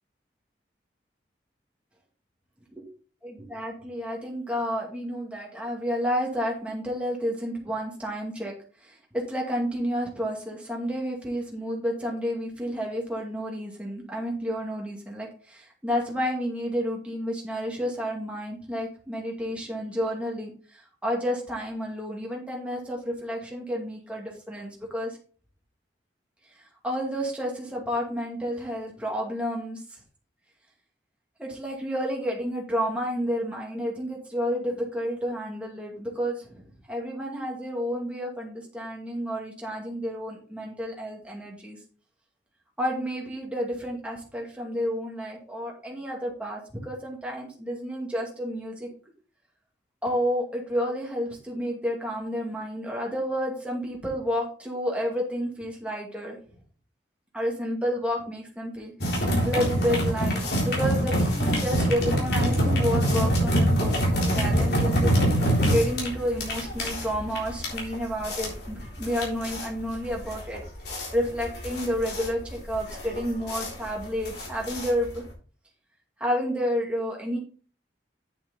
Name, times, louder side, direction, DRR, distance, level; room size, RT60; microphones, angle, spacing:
voice 1, 3.2-8.5 8.8-25.2 26.5-30.0 31.4-36.6 36.9-41.8 42.8-48.9 50.0-56.4 57.3-70.6 71.1-75.2 76.2-77.4, equal, 5° right, -2 dB, 2.4 m, -30 dB
sound 1, 59.0-75.3, equal, 60° left, 3.7 m, -25 dB
8.9 x 6.8 x 4.0 m, 0.41 s
head